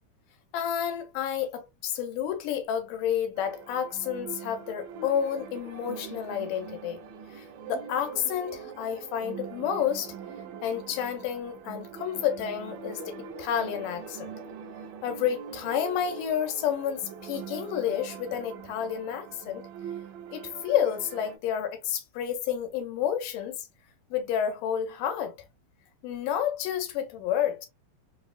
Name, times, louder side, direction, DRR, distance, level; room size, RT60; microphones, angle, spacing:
voice 1, 0.5-7.0 7.3-10.1 10.6-14.3 15.0-19.7 20.3-23.7 24.1-25.3 26.0-27.7, left 9 dB, 85° left, 2.3 m, -30 dB
sound 1, 3.4-21.4, right 7 dB, 80° right, 2.1 m, -42 dB
5.6 x 2.0 x 2.3 m
omnidirectional pair, 3.8 m